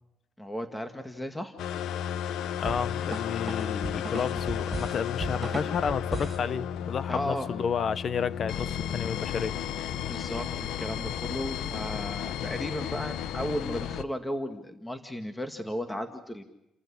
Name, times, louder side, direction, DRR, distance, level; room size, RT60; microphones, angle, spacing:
voice 1, 0.4-1.5 7.1-7.5 10.0-16.4, equal, 10° left, 2.0 m, -35 dB
sound 1, 1.6-14.0, left 9 dB, 80° left, 1.0 m, -33 dB
voice 2, 2.6-9.6, left 7 dB, 55° left, 1.2 m, -31 dB
sound 2, 2.6-6.5, right 3 dB, 15° right, 6.5 m, -36 dB
30.0 x 15.0 x 9.9 m
cardioid pair, 90°, 0 cm